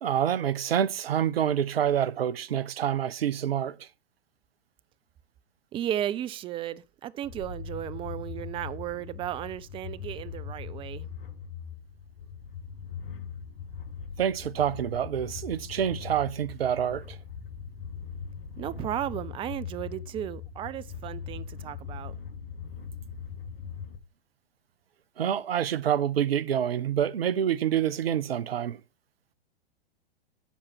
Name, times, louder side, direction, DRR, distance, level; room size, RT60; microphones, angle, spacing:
voice 1, 0.0-3.9 14.2-17.2 25.2-28.8, right 9 dB, 70° right, 0.7 m, -27 dB
voice 2, 5.7-11.1 18.6-22.1, right 12 dB, 15° right, 0.4 m, -34 dB
sound 1, 7.2-24.0, left 6 dB, 60° left, 1.7 m, -40 dB
11.5 x 7.2 x 4.5 m
figure-of-eight pair, 100°, 31 cm